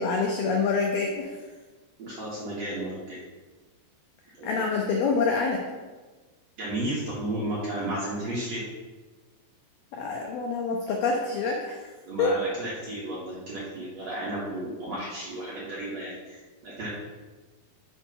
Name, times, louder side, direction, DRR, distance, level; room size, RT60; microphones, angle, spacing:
voice 1, 0.0-1.3 4.4-5.6 9.9-11.8 12.2-12.3, left 4 dB, 90° left, 0 dB, 1.9 m, -26 dB
voice 2, 2.0-3.2 4.4-4.5 6.6-8.6 12.1-16.4 16.6-16.9, right 1 dB, 60° right, -7 dB, 1.8 m, -33 dB
6.4 x 4.5 x 5.5 m, 1.3 s
omnidirectional pair, 4.9 m